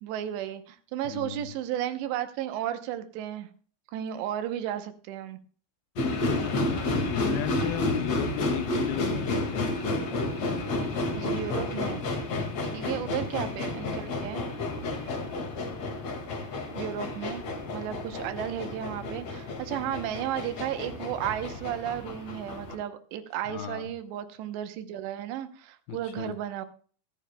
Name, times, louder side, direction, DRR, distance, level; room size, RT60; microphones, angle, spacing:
voice 1, 0.0-3.5 3.9-5.4 11.2-12.0 12.6-14.5 16.8-17.4 17.7-26.7, right 11 dB, 85° right, 10 dB, 3.1 m, -34 dB
voice 2, 1.1-1.5 6.1-9.7 19.8-20.0 23.5-23.8 25.9-26.4, left 10 dB, 75° left, 8 dB, 2.4 m, -35 dB
sound 1, 6.0-22.7, left 2 dB, 45° left, 2.4 m, -31 dB
23.0 x 10.0 x 2.2 m, 0.42 s
omnidirectional pair, 4.9 m